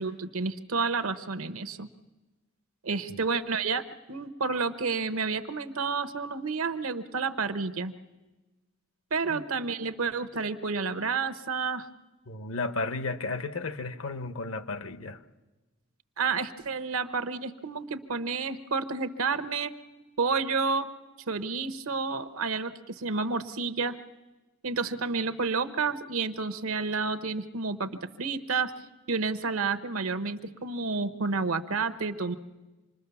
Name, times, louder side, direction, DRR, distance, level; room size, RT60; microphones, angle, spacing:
voice 1, 0.0-1.9 2.8-3.8 4.1-7.9 9.1-11.9 16.2-19.7 20.2-20.9 21.3-24.0 24.6-27.9 28.2-28.7 29.1-32.3, right 4 dB, 80° right, 1.0 m, -30 dB
voice 2, 12.3-15.2, left 3 dB, 70° left, 0.9 m, -34 dB
26.5 x 20.5 x 7.0 m
head